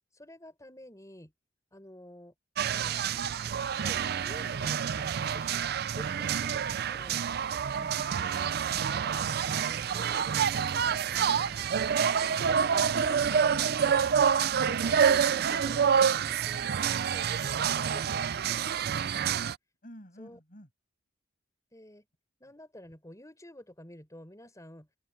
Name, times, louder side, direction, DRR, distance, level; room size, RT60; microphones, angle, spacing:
voice 1, 0.1-1.3 1.7-2.3 2.6-3.0 3.8-5.7 5.9-7.3 8.6-10.3 10.9-11.7 12.5-14.1 14.7-16.8 17.1-18.2 20.2-20.4 21.7-22.1 22.4-24.9, left 1 dB, 15° left, 5.3 m, -50 dB
sound 1, 2.6-19.6, right 7 dB, 55° right, 0.4 m, -28 dB
sound 2, 4.7-15.6, right 2 dB, 30° right, 6.6 m, -58 dB
voice 2, 17.6-19.5 19.8-20.7, equal, 45° left, 6.5 m, -53 dB
head